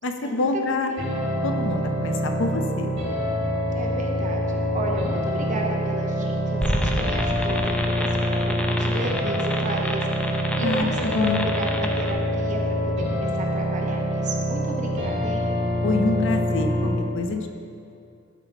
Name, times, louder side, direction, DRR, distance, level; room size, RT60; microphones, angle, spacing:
voice 1, 0.0-0.9 1.4-2.9 10.6-11.5 15.8-17.5, left 3 dB, 65° left, 5 dB, 0.6 m, -26 dB
sound 1, 1.0-17.0, equal, 60° right, 1.8 m, -25 dB
voice 2, 3.7-15.5, right 1 dB, 40° right, 0 dB, 0.9 m, -33 dB
sound 2, 6.6-12.1, equal, 5° left, 0.4 m, -29 dB
12.0 x 4.0 x 4.5 m, 2.5 s
head